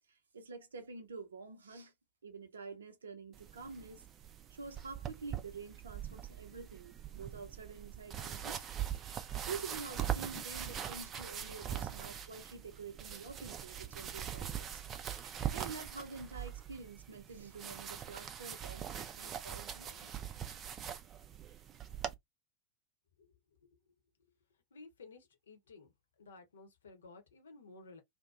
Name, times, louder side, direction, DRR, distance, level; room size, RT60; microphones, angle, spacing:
voice 1, 0.1-1.9 2.2-4.0 4.5-8.6 9.5-14.8 15.5-20.1, right 4 dB, 70° right, 0.6 m, -48 dB
sound 1, 3.3-22.1, right 9 dB, 30° right, 0.4 m, -42 dB
voice 2, 23.6-23.9 24.7-25.9 26.2-28.0, left 3 dB, 65° left, 0.9 m, -55 dB
2.7 x 2.2 x 2.4 m
figure-of-eight pair, 90°, 0 cm